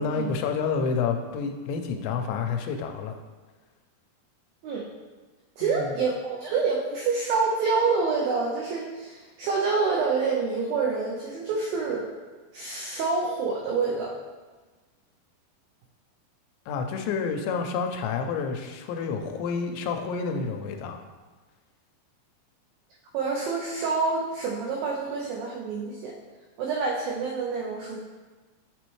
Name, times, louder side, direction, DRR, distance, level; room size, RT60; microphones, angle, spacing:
voice 1, 0.0-3.1 5.6-5.9 16.7-21.0, left 5 dB, 85° left, 5 dB, 2.8 m, -29 dB
voice 2, 5.6-12.1 12.5-14.1 23.1-26.2 26.6-28.0, right 4 dB, 90° right, -2 dB, 2.0 m, -27 dB
8.4 x 4.2 x 3.1 m, 1.3 s
omnidirectional pair, 5.0 m